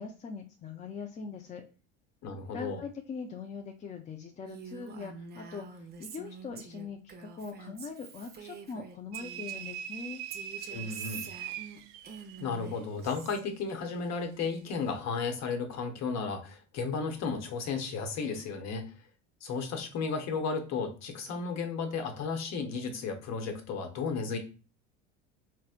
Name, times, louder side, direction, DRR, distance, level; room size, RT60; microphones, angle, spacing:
voice 1, 0.0-1.6 2.5-10.2, left 5 dB, 20° left, 4 dB, 0.3 m, -42 dB
voice 2, 2.2-2.8 10.7-11.3 12.4-18.9 19.4-24.4, left 5 dB, 45° left, 6 dB, 0.9 m, -34 dB
Female speech woman speaking, 4.4-9.8 10.3-13.4, right 5 dB, 25° right, 0.7 m, -47 dB
sound 1, 9.1-12.5, right 10 dB, 60° right, 0.5 m, -41 dB
4.2 x 2.1 x 2.4 m, 0.36 s
hypercardioid pair, 80°, 36 cm